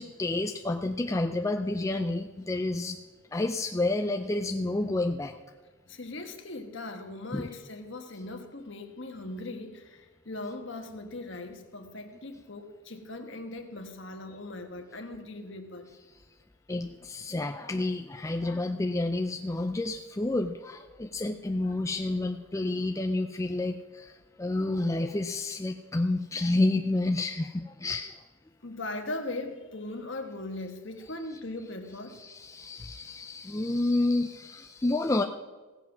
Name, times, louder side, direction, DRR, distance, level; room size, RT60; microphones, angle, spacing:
voice 1, 0.0-3.0 3.3-5.3 7.3-7.5 16.7-24.0 24.4-28.2 32.1-35.2, left 2 dB, 15° left, 0.4 m, -29 dB
voice 2, 5.9-15.9 28.6-32.2, left 2 dB, 60° left, 1.3 m, -39 dB
16.5 x 7.5 x 6.0 m
head